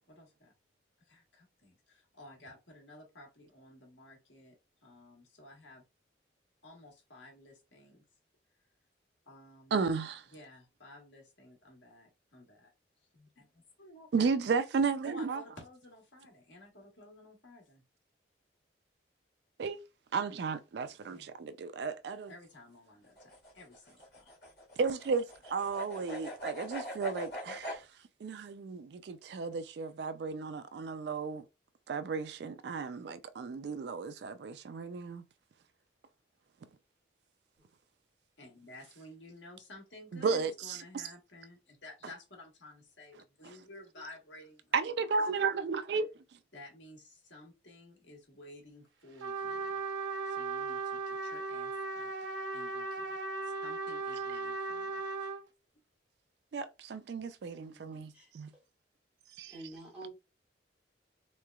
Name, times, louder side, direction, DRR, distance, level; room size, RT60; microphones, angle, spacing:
voice 1, 0.1-0.5 1.1-4.6 4.8-5.8 6.6-8.0 9.3-9.8 10.3-12.7 13.1-14.5 14.9-17.8 21.1-21.3 22.3-24.3 38.4-45.6 46.5-49.8 50.2-52.1 52.5-53.2 53.6-55.0 57.5-58.1, left 1 dB, 85° left, 1.4 m, -54 dB
voice 2, 9.7-10.2 14.1-15.4 19.6-19.8 20.1-22.3 24.8-27.8 28.2-31.4 31.9-35.2 40.1-41.0 44.7-46.1 56.5-58.5 59.4-59.6, right 5 dB, 65° right, 0.3 m, -34 dB
sound 1, 23.1-27.8, equal, 60° left, 2.0 m, -43 dB
Trumpet, 49.2-55.4, right 4 dB, 80° right, 0.8 m, -37 dB
voice 3, 57.9-58.3 59.5-60.1, right 2 dB, 5° right, 1.8 m, -48 dB
3.7 x 3.1 x 2.3 m
head